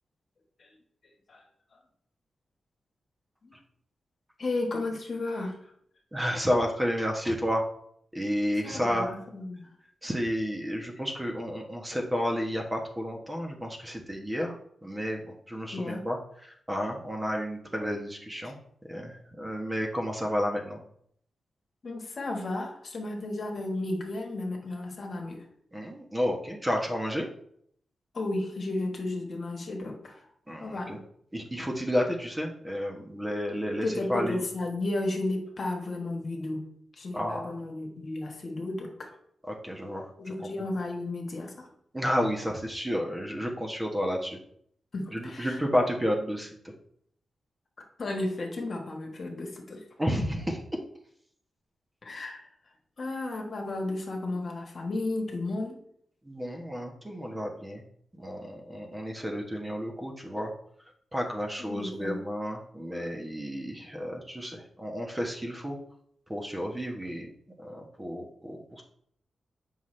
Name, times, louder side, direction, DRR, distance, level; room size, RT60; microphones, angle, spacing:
voice 1, 4.4-5.5 8.6-9.7 15.7-16.0 21.8-25.4 28.1-30.2 30.6-31.0 33.8-36.7 37.0-39.1 40.2-41.7 44.9-45.6 48.0-49.8 52.0-52.5 53.0-55.8 61.6-62.2, left 2 dB, 55° left, 1 dB, 1.4 m, -33 dB
voice 2, 6.1-7.6 8.1-9.1 10.0-14.6 14.8-16.2 16.7-18.6 18.9-20.8 25.7-27.2 30.5-31.0 31.3-34.4 37.1-37.5 39.5-40.1 41.9-44.4 45.1-46.5 50.0-50.6 56.3-57.8 58.1-60.5 61.1-65.8 66.3-67.3 67.6-68.8, equal, 15° right, 1 dB, 1.2 m, -31 dB
7.2 x 5.7 x 3.3 m, 0.67 s
cardioid pair, 70°, 0 cm